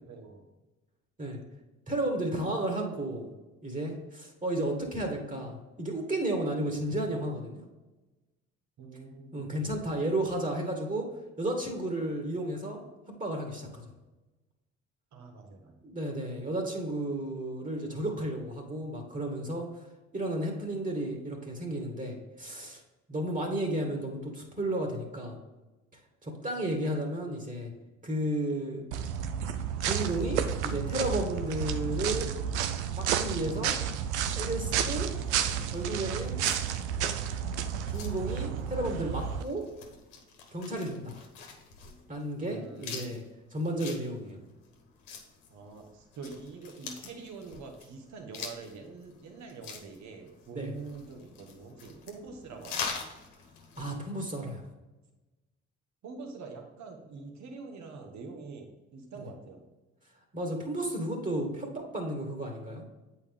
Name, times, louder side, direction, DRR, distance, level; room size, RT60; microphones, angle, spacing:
voice 1, 0.1-0.5 8.8-9.5 15.1-15.9 42.4-43.2 45.5-53.0 56.0-59.6, right 4 dB, 55° right, 3 dB, 1.6 m, -45 dB
voice 2, 1.9-3.3 3.6-7.6 9.3-11.1 11.4-12.8 13.2-13.9 15.8-19.7 20.1-22.8 23.1-25.4 26.2-27.7 28.0-28.8 29.8-32.3 32.9-33.7 34.3-35.1 35.7-36.4 37.9-39.7 40.5-41.2 42.1-43.2 43.5-44.4 50.5-50.7 53.8-54.6 59.2-59.3 60.3-62.8, right 1 dB, 25° right, 2 dB, 2.0 m, -33 dB
sound 1, 28.9-39.4, right 8 dB, 85° right, 0.5 m, -31 dB
sound 2, 35.2-54.0, left 5 dB, 70° left, 1.3 m, -45 dB
8.4 x 4.5 x 3.7 m, 1.1 s
hypercardioid pair, 55°, 33 cm